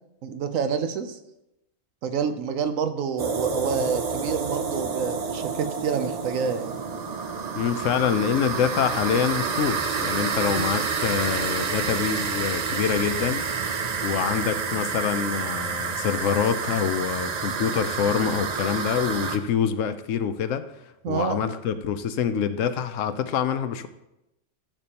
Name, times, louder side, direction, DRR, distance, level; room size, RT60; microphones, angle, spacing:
voice 1, 0.2-1.2 2.0-6.8 10.5-10.8 21.0-21.4, right 6 dB, 80° right, 9 dB, 1.1 m, -28 dB
sound 1, 3.2-19.4, right 5 dB, 50° right, 0.5 m, -29 dB
voice 2, 7.5-13.5 14.0-20.6 21.1-23.9, left 8 dB, 75° left, 11 dB, 1.0 m, -26 dB
13.5 x 6.8 x 2.9 m, 0.90 s
omnidirectional pair, 1.4 m